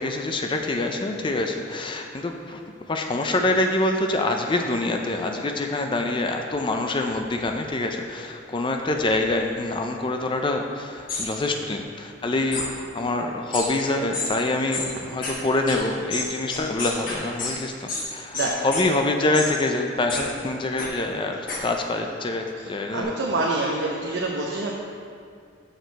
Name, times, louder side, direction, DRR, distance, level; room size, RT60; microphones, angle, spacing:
voice 1, 0.0-2.6 2.9-23.1, left 2 dB, 25° left, 3 dB, 0.4 m, -26 dB
sound 1, 11.1-11.3 12.5-12.7 13.5-13.7 14.1-14.3 14.7-14.9 15.2-15.3 15.7-15.8 16.1-17.5 17.9-18.1 18.3-18.8 19.3-19.5 20.1-20.2 20.8-20.9 21.5-21.6, left 3 dB, 50° left, 1.2 m, -29 dB
voice 2, 18.3-18.6 22.6-24.7, right 2 dB, 70° right, -2 dB, 0.7 m, -27 dB
6.5 x 6.3 x 4.0 m, 2.3 s
head